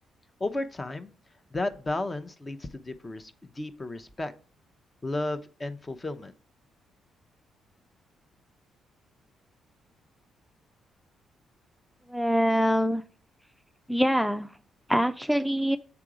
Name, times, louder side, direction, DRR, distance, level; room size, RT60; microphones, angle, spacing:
voice 1, 0.4-1.1 1.5-4.3 5.0-6.3, left 2 dB, 30° left, 10 dB, 0.7 m, -33 dB
voice 2, 12.1-13.0 13.9-14.5 14.9-15.8, equal, ahead, 9 dB, 0.4 m, -24 dB
6.9 x 3.6 x 4.8 m, 0.40 s
hypercardioid pair, 50°, 0 cm